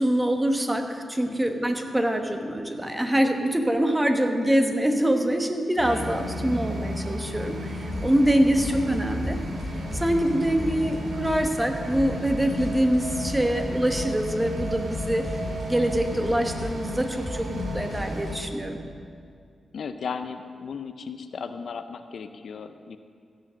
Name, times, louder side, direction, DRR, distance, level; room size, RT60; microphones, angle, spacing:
voice 1, 0.0-9.4 9.9-15.3 15.7-18.8, right 1 dB, 15° right, 5 dB, 1.1 m, -24 dB
sound 1, 5.8-18.4, equal, 75° right, 2.0 m, -34 dB
sound 2, 7.9-18.6, left 1 dB, 40° left, 2.5 m, -37 dB
voice 2, 19.7-23.0, left 6 dB, 70° left, 9 dB, 0.5 m, -36 dB
15.5 x 6.2 x 6.4 m, 2.2 s
cardioid pair, 70°, 0 cm